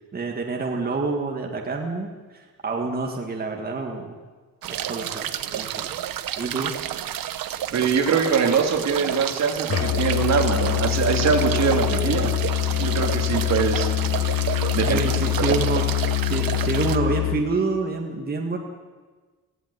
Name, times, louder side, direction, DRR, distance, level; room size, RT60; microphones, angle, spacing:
voice 1, 0.1-2.1 2.6-4.1 4.7-5.9 6.4-6.7 12.1-12.4 14.8-16.0 16.2-18.6, right 3 dB, 25° right, 1 dB, 1.9 m, -27 dB
sound 1, 4.6-17.0, right 11 dB, 85° right, 1.1 m, -30 dB
voice 2, 7.7-12.3 12.8-13.9 14.7-15.0 15.4-15.6, right 6 dB, 55° right, 5 dB, 2.4 m, -23 dB
Musical instrument, 9.7-17.5, left 16 dB, 45° left, 0.8 m, -24 dB
17.0 x 16.5 x 9.6 m, 1.4 s
wide cardioid pair, 180°, 34 cm